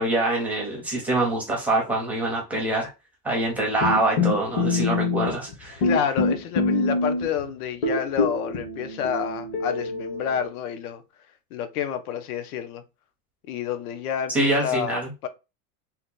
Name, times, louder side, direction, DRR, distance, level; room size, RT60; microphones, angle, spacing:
voice 1, 0.0-2.9 3.2-5.8 14.3-15.1, right 2 dB, 5° right, 0.4 m, -25 dB
sound 1, 3.8-5.5 5.8-7.4 7.8-10.5, left 3 dB, 35° left, 0.7 m, -25 dB
voice 2, 5.8-11.0 11.5-12.8 13.5-15.3, left 8 dB, 75° left, 0.7 m, -29 dB
2.8 x 2.2 x 3.7 m
supercardioid pair, 160°, 44 cm